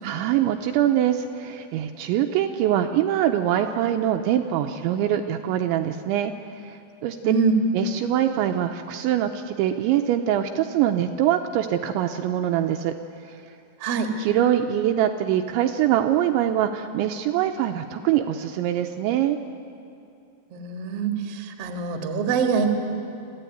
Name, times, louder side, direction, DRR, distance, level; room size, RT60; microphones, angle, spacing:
voice 1, 0.0-7.3 7.7-12.9 13.3-13.4 14.2-19.4, right 11 dB, 80° right, 5 dB, 2.8 m, -23 dB
voice 2, 7.2-7.6 13.8-14.1 20.5-22.7, right 5 dB, 50° right, 4 dB, 1.9 m, -24 dB
26.5 x 15.0 x 9.2 m, 2.6 s
omnidirectional pair, 5.6 m